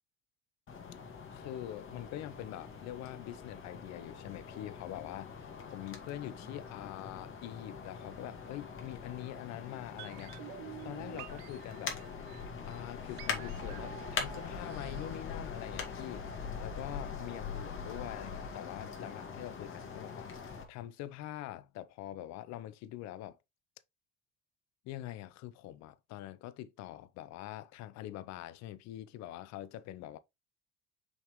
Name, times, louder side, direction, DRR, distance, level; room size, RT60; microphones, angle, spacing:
sound 1, 0.7-20.6, left 5 dB, 40° left, 2.3 m, -43 dB
voice 1, 1.3-12.0 12.7-16.3 16.6-23.4 24.8-30.2, left 13 dB, 60° left, 0.8 m, -44 dB
sound 2, 10.0-16.0 16.3-16.4, right 17 dB, 65° right, 0.6 m, -50 dB
5.7 x 5.4 x 3.1 m
hypercardioid pair, 65°, 32 cm